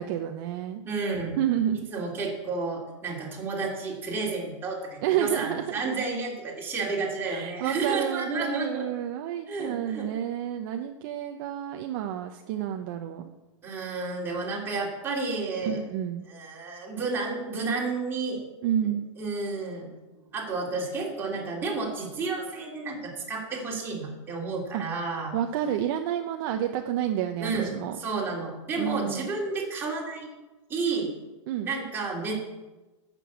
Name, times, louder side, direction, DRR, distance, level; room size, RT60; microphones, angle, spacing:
voice 1, 0.0-0.8 1.4-1.9 5.0-5.9 7.2-13.2 15.6-16.2 18.6-19.0 24.7-24.8 25.3-28.0 28.8-29.3 31.5-31.7, right 11 dB, 45° right, 5 dB, 0.8 m, -30 dB
voice 2, 0.8-1.4 1.9-8.9 9.5-10.1 13.6-15.8 16.3-18.4 18.8-18.9 19.2-19.9 20.3-25.3 27.4-27.7 28.0-30.3 30.7-31.1 31.6-32.4, right 3 dB, 15° right, -4 dB, 3.3 m, -31 dB
12.0 x 7.0 x 8.2 m, 1.1 s
supercardioid pair, 160°, 17 cm